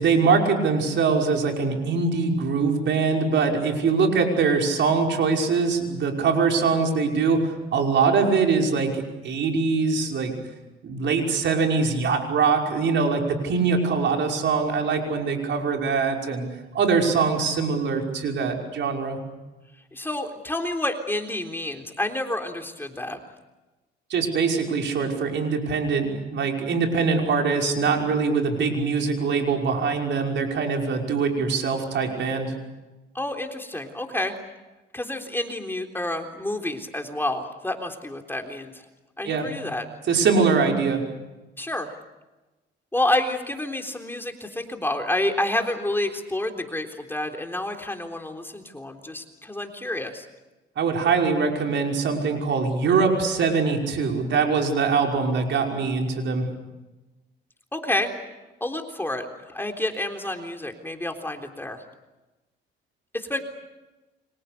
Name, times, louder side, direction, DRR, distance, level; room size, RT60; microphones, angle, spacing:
voice 1, 0.0-10.3 10.8-16.5 16.7-19.2 24.1-32.5 39.2-39.5 40.1-41.0 50.8-56.4, right 5 dB, 65° right, 2 dB, 5.7 m, -23 dB
voice 2, 19.9-23.2 33.1-34.3 34.9-38.7 39.2-39.8 41.6-41.9 42.9-50.3 57.7-58.1 58.6-61.8 63.1-63.4, left 1 dB, 10° left, 4 dB, 3.7 m, -29 dB
29.5 x 25.5 x 6.8 m, 1.1 s
cardioid pair, 90°, 20 cm